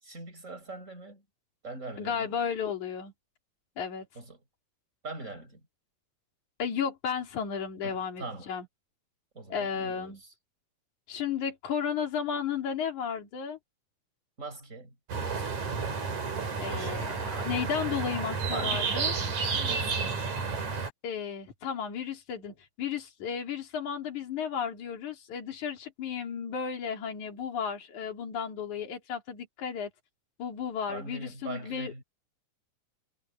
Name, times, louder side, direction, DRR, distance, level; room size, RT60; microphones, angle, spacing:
voice 1, 0.0-1.2 1.6-2.3 4.2-4.4 5.0-5.6 7.8-8.5 9.3-10.1 14.4-15.0 16.7-17.1 18.5-19.0 19.5-20.0 30.9-32.0, right 3 dB, 25° right, 7.5 m, -41 dB
voice 2, 2.0-3.1 3.8-4.1 6.6-8.7 9.5-10.2 11.1-13.6 16.6-19.1 21.0-29.9 30.4-32.0, left 7 dB, 75° left, 4.4 m, -33 dB
sound 1, 15.1-20.9, right 5 dB, 70° right, 5.5 m, -31 dB
omnidirectional pair, 3.4 m